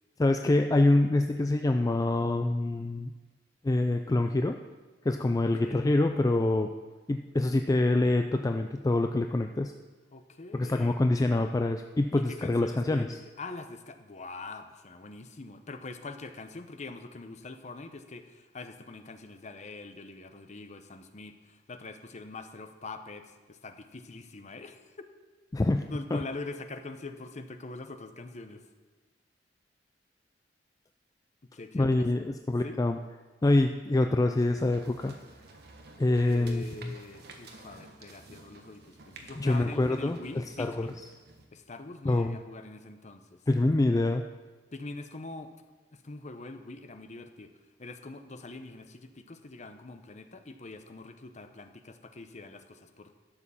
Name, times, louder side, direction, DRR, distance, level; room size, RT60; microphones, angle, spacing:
voice 1, 0.2-3.1 3.6-4.6 5.0-6.7 7.1-9.7 10.5-13.2 25.5-25.8 26.1-26.2 31.7-33.0 33.4-35.1 36.0-36.9 39.4-40.9 42.0-42.4 43.5-44.2, left 2 dB, 20° left, 6 dB, 0.3 m, -26 dB
voice 2, 10.1-11.0 12.1-25.0 25.9-28.7 31.4-32.3 32.6-32.8 36.2-41.0 41.5-43.4 44.7-45.5 45.9-47.5 47.8-53.2, left 3 dB, 40° left, 8 dB, 0.8 m, -44 dB
sound 1, 34.4-41.5, right 3 dB, 60° right, 1.3 m, -52 dB
12.0 x 7.2 x 5.6 m, 1.3 s
head